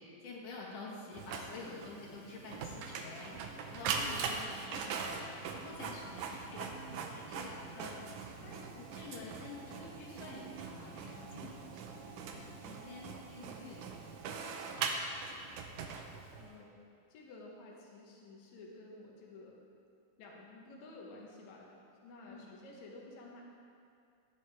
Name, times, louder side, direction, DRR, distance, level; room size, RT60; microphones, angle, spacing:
voice 1, 0.0-3.4 3.7-6.8 7.0-15.6 22.2-22.6, left 3 dB, 85° left, -4 dB, 3.2 m, -49 dB
Printer, 1.1-16.5, right 5 dB, 80° right, 2.2 m, -41 dB
sound 1, 1.4-13.2, right 4 dB, 55° right, 1.1 m, -57 dB
voice 2, 16.3-16.8 17.1-19.6 20.2-21.7 22.0-23.4, left 2 dB, 70° left, -3 dB, 2.4 m, -52 dB
15.5 x 9.1 x 3.5 m, 2.4 s
omnidirectional pair, 3.5 m